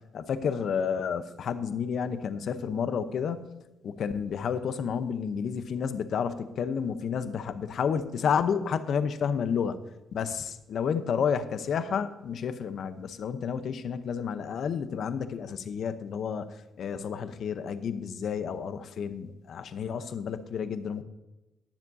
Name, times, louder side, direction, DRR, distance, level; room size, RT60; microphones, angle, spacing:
voice 1, 0.1-3.5 3.8-9.8 10.1-16.5 16.8-21.0, left 7 dB, 65° left, 11 dB, 0.8 m, -30 dB
20.0 x 7.3 x 2.7 m, 1.0 s
cardioid pair, 90°, 0 cm